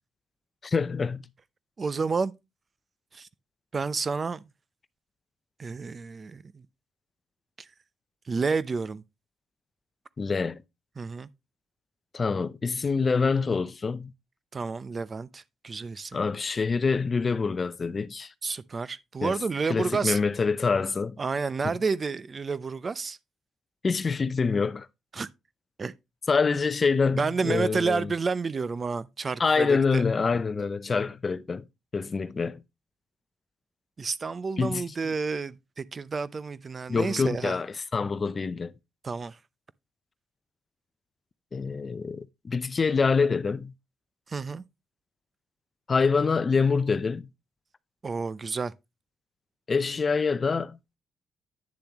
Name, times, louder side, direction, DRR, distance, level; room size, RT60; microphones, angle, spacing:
voice 1, 0.6-1.2 10.2-10.6 12.1-14.1 16.1-18.3 19.2-19.4 19.7-21.2 21.6-21.7 23.8-24.9 26.3-28.1 29.4-31.6 31.9-32.6 34.6-34.8 36.9-38.7 41.5-43.7 45.9-47.3 49.7-51.0, left 4 dB, 35° left, 0.6 m, -26 dB
voice 2, 1.8-2.3 3.1-3.3 3.7-4.4 5.6-6.6 7.6-7.7 8.3-9.0 11.0-11.3 14.5-16.2 18.4-20.2 21.2-23.2 25.1-25.3 25.8-25.9 27.2-30.0 34.0-37.6 39.0-39.4 44.3-44.6 48.0-48.7, right 4 dB, 35° right, 0.6 m, -30 dB
9.8 x 6.9 x 3.0 m
cardioid pair, 90°, 0 cm